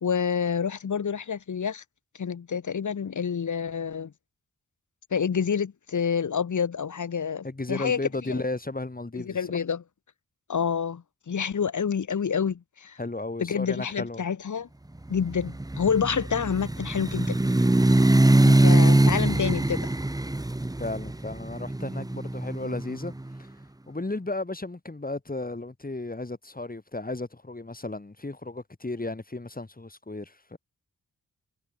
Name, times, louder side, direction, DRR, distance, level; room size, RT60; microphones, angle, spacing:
voice 1, 0.0-1.8 2.2-4.1 5.1-8.0 8.3-8.4 9.1-9.8 10.5-13.0 13.4-14.7 15.1-17.4 18.4-19.9, left 7 dB, 65° left, 1.3 m, -28 dB
voice 2, 7.4-9.6 13.0-14.2 20.8-23.1 23.9-30.6, left 2 dB, 25° left, 3.7 m, -34 dB
sound 1, 15.2-23.2, right 1 dB, 10° right, 1.2 m, -22 dB
cardioid pair, 65°, 32 cm